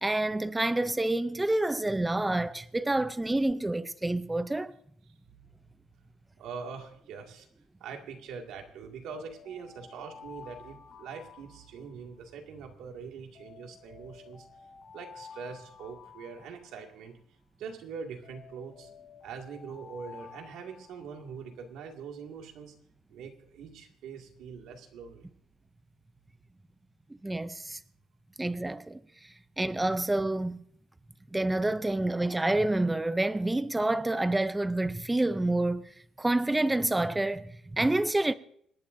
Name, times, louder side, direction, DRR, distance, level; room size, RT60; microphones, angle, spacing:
voice 1, 0.0-4.7 27.2-27.8 28.4-29.0 29.6-30.6 31.3-35.9 36.2-38.3, right 2 dB, 10° right, 0.5 m, -28 dB
voice 2, 6.4-7.5 7.8-14.5 14.9-17.1 17.6-18.9 19.2-22.7 23.1-25.3, right 6 dB, 80° right, 2.1 m, -43 dB
sound 1, 9.0-12.2 13.3-17.1 18.2-21.4, left 6 dB, 55° left, 3.8 m, -51 dB
26.5 x 11.5 x 2.6 m
cardioid pair, 160°, 0 cm